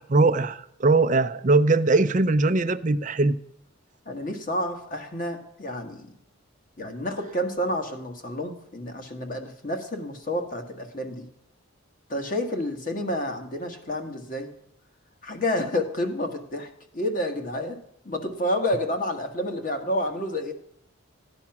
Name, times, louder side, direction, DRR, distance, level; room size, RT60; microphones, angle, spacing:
voice 1, 0.0-3.4, right 3 dB, 35° right, 12 dB, 0.5 m, -21 dB
voice 2, 4.0-6.1 6.8-11.3 12.1-14.5 15.2-17.8 18.0-20.5, left 1 dB, 40° left, 5 dB, 1.7 m, -29 dB
14.5 x 9.6 x 5.9 m, 0.74 s
head